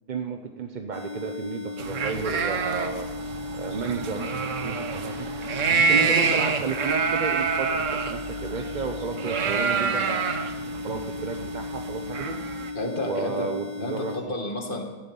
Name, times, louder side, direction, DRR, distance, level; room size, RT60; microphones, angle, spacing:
voice 1, 0.1-3.1 3.5-4.2 4.6-5.3 5.6-10.4 10.8-12.4 13.0-14.1, right 4 dB, 40° right, 5 dB, 0.7 m, -32 dB
sound 1, 0.9-14.2, left 3 dB, 75° right, 2.7 m, -36 dB
sound 2, 1.8-12.7, right 5 dB, 55° right, 1.3 m, -27 dB
voice 2, 12.7-13.5 13.8-14.8, left 1 dB, 35° left, 1 dB, 2.3 m, -31 dB
16.0 x 14.5 x 5.5 m, 1.3 s
omnidirectional pair, 1.7 m